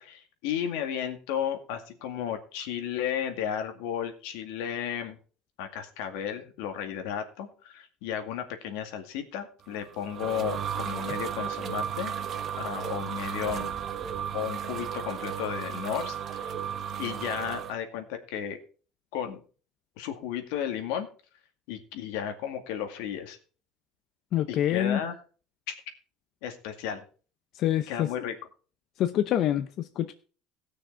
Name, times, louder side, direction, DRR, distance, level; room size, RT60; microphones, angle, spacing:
voice 1, 0.0-5.2 5.6-12.1 12.6-13.8 14.3-16.5 17.0-18.6 19.1-19.4 20.0-21.1 21.7-23.4 24.5-25.1 25.7-25.8 26.4-27.0 27.9-28.3, left 9 dB, 80° left, 6 dB, 2.1 m, -33 dB
sound 1, 9.7-17.7, right 8 dB, 30° right, 0.9 m, -34 dB
voice 2, 24.3-25.0 27.5-28.3 29.0-30.1, left 11 dB, 45° left, 10 dB, 0.7 m, -26 dB
17.5 x 6.4 x 4.5 m, 0.38 s
cardioid pair, 160°, 0 cm